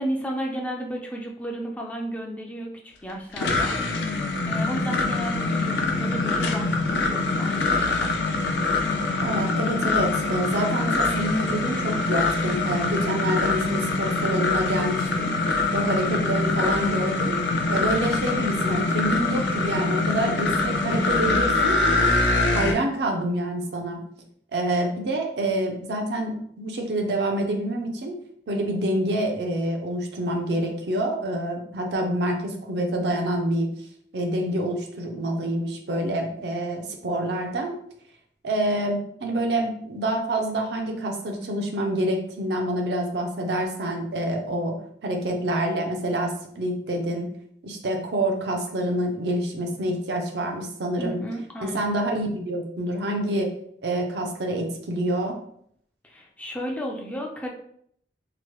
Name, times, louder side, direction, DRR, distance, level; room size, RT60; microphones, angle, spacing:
voice 1, 0.0-3.8 4.5-8.2 51.0-51.9 56.0-57.5, equal, 10° left, 0 dB, 0.3 m, -33 dB
sound 1, 3.1-22.7, left 3 dB, 80° left, 0.5 m, -24 dB
voice 2, 9.2-15.3 15.7-17.4 17.7-22.1 22.5-24.0 24.5-28.1 28.5-33.7 34.1-37.7 38.4-44.7 45.0-47.3 47.6-51.2 51.6-53.5 53.8-55.4, right 1 dB, 70° right, 2 dB, 0.5 m, -27 dB
3.0 x 2.1 x 3.0 m, 0.67 s
head